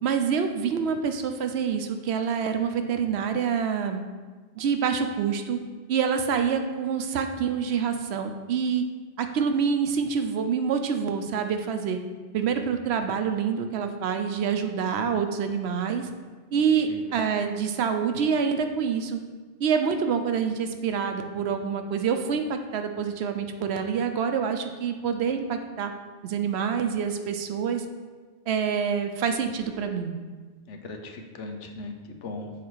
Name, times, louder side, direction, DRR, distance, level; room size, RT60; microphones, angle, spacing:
voice 1, 0.0-4.0 4.6-5.6 5.9-8.8 9.2-12.0 12.3-16.1 16.5-19.2 19.6-25.9 26.2-27.8 28.5-30.1, right 6 dB, 70° right, 6 dB, 0.8 m, -26 dB
voice 2, 16.5-17.2 30.7-32.5, left 3 dB, 90° left, 4 dB, 1.1 m, -39 dB
7.2 x 4.1 x 4.6 m, 1.4 s
omnidirectional pair, 1.2 m